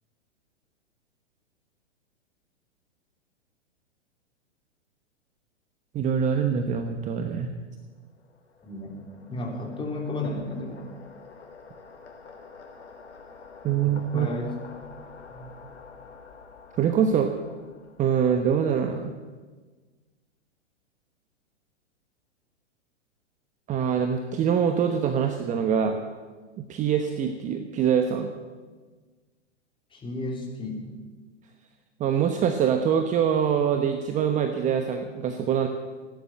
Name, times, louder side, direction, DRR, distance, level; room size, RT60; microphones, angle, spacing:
voice 1, 5.9-7.5 13.6-14.3 16.8-17.3 18.0-19.1 23.7-26.0 26.6-28.3 32.0-35.7, right 7 dB, 20° right, 6 dB, 1.1 m, -24 dB
sound 1, 7.8-18.5, left 5 dB, 70° left, 3.9 m, -48 dB
voice 2, 8.6-9.0 9.3-10.9 13.8-14.5 15.3-15.5 29.9-30.9, left 2 dB, 15° left, 0 dB, 3.5 m, -33 dB
17.0 x 11.0 x 7.8 m, 1.4 s
hypercardioid pair, 115°, 36 cm